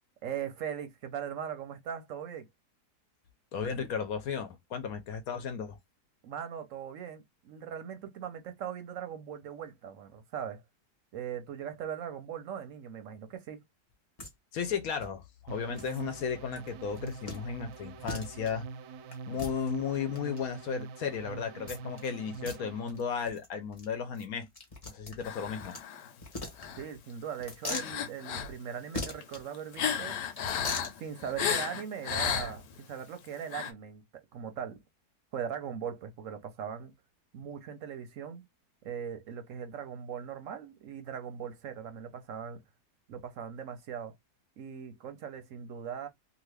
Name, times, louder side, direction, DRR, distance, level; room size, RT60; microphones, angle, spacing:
voice 1, 0.2-2.5 6.2-10.6 11.1-13.6 19.3-19.4 26.8-30.2 31.0-34.0 34.3-34.8 35.3-36.9 37.3-38.4 38.8-42.6 43.1-44.1 44.6-46.1, right 8 dB, 65° right, 0.9 m, -40 dB
voice 2, 3.5-5.8 14.5-18.7 19.3-24.5 24.9-25.8, left 6 dB, 70° left, 1.0 m, -34 dB
sound 1, 14.2-14.3 14.6-14.7 15.0-15.1 15.8-16.0 16.5-16.7 17.0-17.4 17.7-17.8 18.1-18.5 19.1-20.4 21.7-22.1 22.3-22.6 22.9-23.0 23.3-23.5 23.7-23.8 24.1-25.8 26.2-27.0 27.4-27.9 28.9-29.4 30.3-30.9, left 2 dB, 30° left, 0.8 m, -40 dB
sound 2, 15.5-23.0, right 5 dB, 85° right, 1.2 m, -44 dB
sound 3, 25.2-26.1 26.6-26.9 27.6-28.5 29.0-32.8 33.4-33.7, left 8 dB, 90° left, 1.3 m, -33 dB
2.8 x 2.5 x 3.2 m
omnidirectional pair, 1.7 m